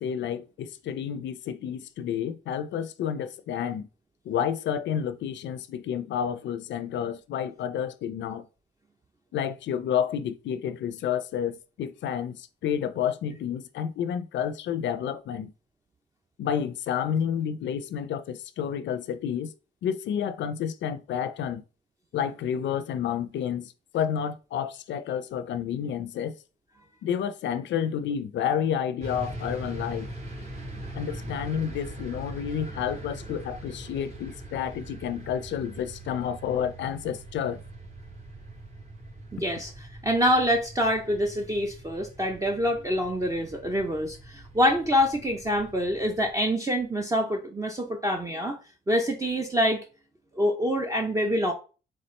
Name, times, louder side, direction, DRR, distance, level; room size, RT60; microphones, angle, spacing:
voice 1, 0.0-3.9 4.3-8.5 9.3-15.5 16.4-19.5 19.8-21.6 22.1-26.3 27.0-30.1 30.9-37.6, left 8 dB, 65° left, 0.5 m, -30 dB
sound 1, 29.0-46.3, right 1 dB, 35° right, 1.6 m, -42 dB
voice 2, 39.3-39.7 40.0-48.6 48.9-49.8 50.3-51.5, equal, 15° right, 0.7 m, -26 dB
4.2 x 3.6 x 3.2 m
cardioid pair, 90°, 20 cm